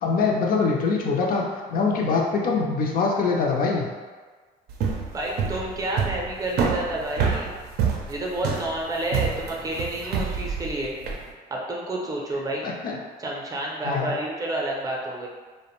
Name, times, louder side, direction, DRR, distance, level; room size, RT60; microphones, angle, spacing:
voice 1, 0.0-1.4 1.7-3.9 12.6-13.0 13.8-14.1, left 4 dB, 60° left, -1 dB, 0.5 m, -23 dB
sound 1, 4.7-11.2, right 6 dB, 75° right, 0.4 m, -27 dB
voice 2, 5.1-7.5 8.1-10.9 11.5-12.6 13.2-15.3, right 1 dB, 20° right, -2 dB, 0.5 m, -29 dB
2.5 x 2.1 x 2.9 m, 1.4 s
cardioid pair, 110°, 17 cm